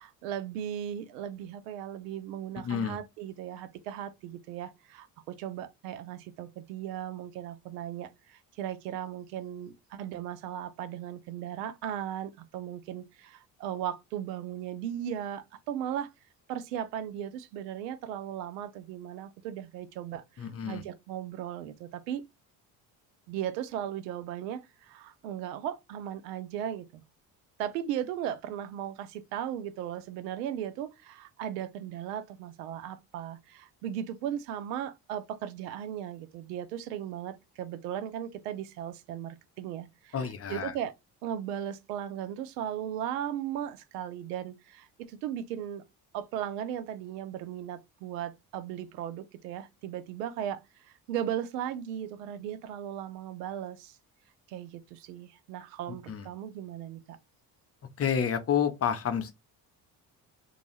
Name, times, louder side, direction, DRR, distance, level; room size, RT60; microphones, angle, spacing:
voice 1, 0.0-16.1 16.5-22.2 23.3-27.0 27.6-40.2 40.5-40.9 41.2-45.8 46.1-54.0 54.5-57.2, right 10 dB, 85° right, 0.5 m, -37 dB
voice 2, 2.6-3.0 20.4-20.8 40.1-40.8 56.1-56.3 58.0-59.3, left 8 dB, 30° left, 0.6 m, -29 dB
2.5 x 2.3 x 3.0 m
hypercardioid pair, 60°, 47 cm